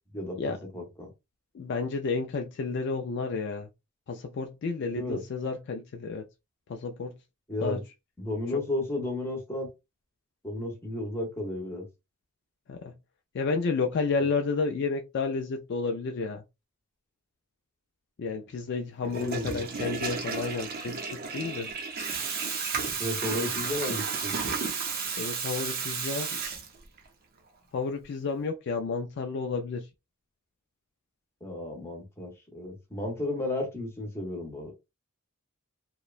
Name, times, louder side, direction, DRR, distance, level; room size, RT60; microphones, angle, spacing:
voice 1, 0.7-1.1 4.9-5.2 7.5-7.8 8.2-9.7 10.4-11.9 19.1-19.6 23.0-24.6 31.4-34.7, left 1 dB, 10° left, 0.8 m, -33 dB
voice 2, 1.5-3.7 4.1-6.3 6.7-7.1 7.6-7.8 8.5-8.6 12.7-12.9 13.3-16.4 18.2-21.7 25.2-26.4 27.7-29.9, left 4 dB, 50° left, 0.3 m, -31 dB
Water tap faucet / Toilet flush, 19.0-27.1, right 5 dB, 40° right, 0.5 m, -33 dB
2.8 x 2.1 x 2.4 m
head